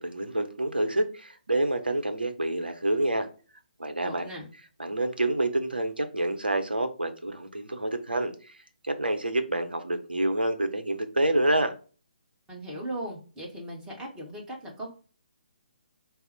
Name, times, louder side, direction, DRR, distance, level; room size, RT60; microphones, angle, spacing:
voice 1, 0.0-3.3 3.8-4.3 4.8-8.3 8.8-11.7, right 1 dB, 80° right, 7 dB, 0.7 m, -27 dB
voice 2, 4.0-4.5 12.5-14.9, right 1 dB, 10° right, -3 dB, 1.0 m, -38 dB
4.0 x 2.0 x 4.1 m, 0.37 s
figure-of-eight pair, 135°, 5 cm